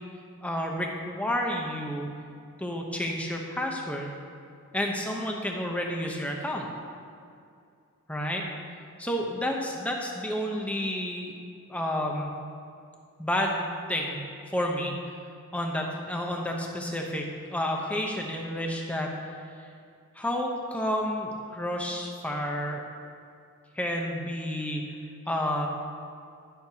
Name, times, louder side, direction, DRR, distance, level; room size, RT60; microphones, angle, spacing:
voice 1, 0.4-2.1 2.6-4.1 4.7-6.7 8.1-8.4 9.0-11.3 11.7-12.3 13.2-14.2 14.5-14.9 15.5-19.1 20.1-22.8 23.7-24.8 25.3-25.7, equal, 5° left, 0 dB, 0.8 m, -30 dB
18.5 x 6.5 x 2.9 m, 2.4 s
head